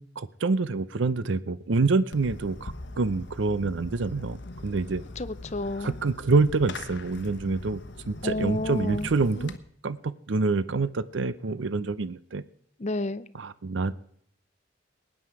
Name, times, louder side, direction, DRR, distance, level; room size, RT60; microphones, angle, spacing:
voice 1, 0.0-5.0 5.8-7.8 8.1-9.5 9.8-12.4 13.4-14.0, right 3 dB, 70° right, 16 dB, 0.6 m, -26 dB
Fireworks, 2.1-9.6, left 2 dB, 60° left, 1.1 m, -41 dB
voice 2, 5.2-6.0 8.2-9.1 12.8-13.3, left 2 dB, 35° left, 14 dB, 0.6 m, -31 dB
20.0 x 9.7 x 4.7 m, 0.67 s
head